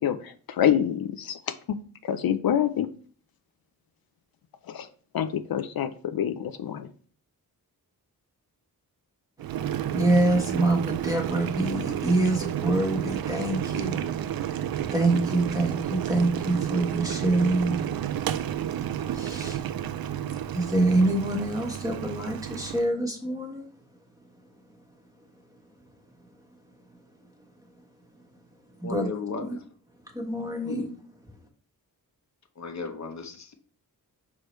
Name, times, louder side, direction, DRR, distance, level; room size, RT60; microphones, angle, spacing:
voice 1, 0.0-1.8 2.0-2.9 4.7-4.9 5.1-6.9, left 9 dB, 75° left, 9 dB, 0.6 m, -27 dB
Boiling, 9.4-22.9, right 10 dB, 75° right, 0.5 m, -31 dB
voice 2, 9.9-23.7 24.3-24.8 25.2-26.5 26.9-27.3 27.7-27.8 28.1-28.2 28.5-29.1 29.4-29.6 30.0-30.9, right 2 dB, 10° right, 1 dB, 1.3 m, -27 dB
voice 3, 28.8-29.6 30.7-30.9 32.6-33.5, left 4 dB, 50° left, 6 dB, 1.0 m, -35 dB
6.2 x 4.8 x 3.1 m, 0.43 s
wide cardioid pair, 100°, 36 cm